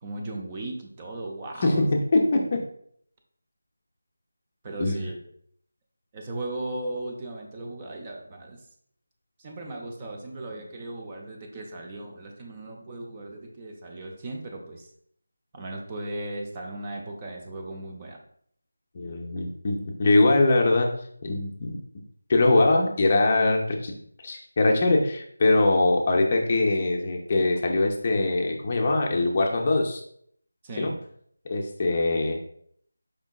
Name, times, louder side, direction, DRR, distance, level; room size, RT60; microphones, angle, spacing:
voice 1, 0.0-1.9 4.6-5.2 6.1-8.6 9.4-14.9 15.5-18.2 30.6-31.0, right 2 dB, 20° right, 1 dB, 0.5 m, -37 dB
voice 2, 1.6-2.6 4.8-5.0 18.9-20.9 21.2-21.8 22.3-23.9 24.2-30.0 30.8-30.9 31.5-32.4, left 2 dB, 30° left, 1 dB, 0.5 m, -22 dB
5.0 x 3.5 x 2.3 m, 0.65 s
figure-of-eight pair, 170°, 0 cm